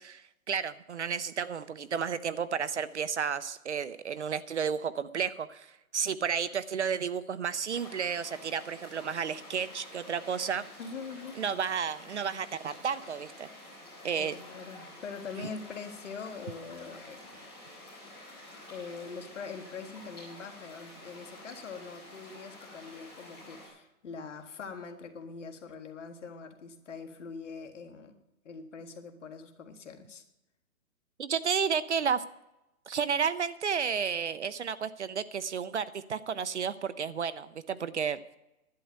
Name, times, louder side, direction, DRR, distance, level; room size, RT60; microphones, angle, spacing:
voice 1, 0.0-10.6 11.4-13.5 14.0-14.4 31.2-32.2 32.9-38.2, right 7 dB, 50° right, 15 dB, 0.5 m, -32 dB
sound 1, 7.7-23.7, left 1 dB, 10° left, 4.4 m, -49 dB
voice 2, 10.8-11.4 14.2-17.5 18.7-28.2 28.5-30.2, left 5 dB, 55° left, 6 dB, 1.7 m, -43 dB
11.5 x 9.7 x 6.5 m, 0.91 s
hypercardioid pair, 170°, 44 cm